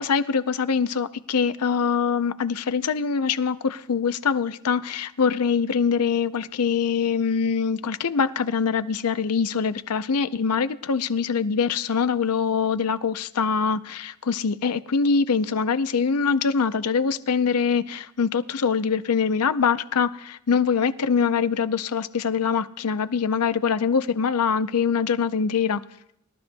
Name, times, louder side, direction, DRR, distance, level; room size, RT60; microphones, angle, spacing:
voice 1, 0.0-25.8, left 6 dB, 90° left, 0.6 m, -23 dB
21.0 x 12.0 x 2.2 m
head